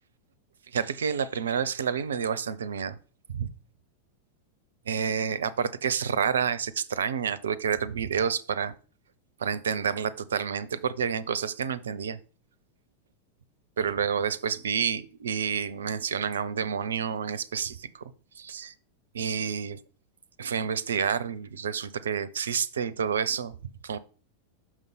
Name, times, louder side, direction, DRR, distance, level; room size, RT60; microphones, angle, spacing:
voice 1, 0.7-3.0 3.3-3.5 4.9-8.7 9.4-12.2 13.8-18.0 18.4-18.7 19.1-19.8 20.4-23.5 23.8-24.0, right 7 dB, 65° right, 17 dB, 0.5 m, -29 dB
6.2 x 5.3 x 3.9 m, 0.39 s
figure-of-eight pair, 90°, 0 cm